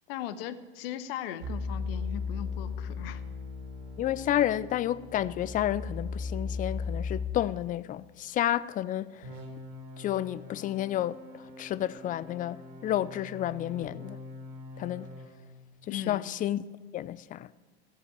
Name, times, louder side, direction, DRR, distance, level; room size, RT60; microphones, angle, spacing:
voice 1, 0.1-3.2 15.9-16.3, left 11 dB, 60° left, 1.0 m, -38 dB
sound 1, 1.4-7.3 9.2-15.3, left 4 dB, 70° right, 2.9 m, -38 dB
voice 2, 4.0-9.3 10.0-14.2 14.8-15.1 15.9-16.6 16.9-17.5, left 12 dB, 25° left, 0.4 m, -31 dB
15.0 x 7.6 x 8.9 m
hypercardioid pair, 85°, 33 cm